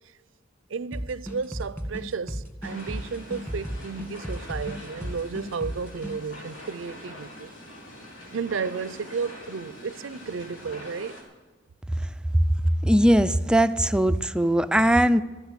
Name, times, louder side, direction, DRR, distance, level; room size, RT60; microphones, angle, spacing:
voice 1, 0.7-7.5 8.3-11.2, right 5 dB, 80° right, 0.5 m, -33 dB
sound 1, 0.9-6.2, equal, 10° left, 1.9 m, -34 dB
sound 2, 2.6-11.2, left 1 dB, 80° left, 3.4 m, -44 dB
voice 2, 12.8-15.2, equal, 5° right, 0.3 m, -20 dB
13.0 x 8.3 x 9.7 m
head